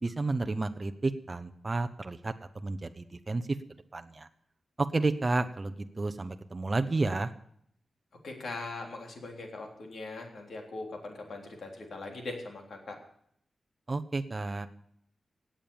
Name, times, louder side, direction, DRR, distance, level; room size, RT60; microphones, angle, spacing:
voice 1, 0.0-3.6 3.9-4.3 4.8-7.3 13.9-14.7, right 3 dB, 25° right, 8 dB, 0.7 m, -31 dB
voice 2, 8.2-13.0, left 2 dB, 70° left, 2 dB, 3.5 m, -41 dB
17.0 x 8.9 x 7.0 m, 0.69 s
wide cardioid pair, 165°, 0 cm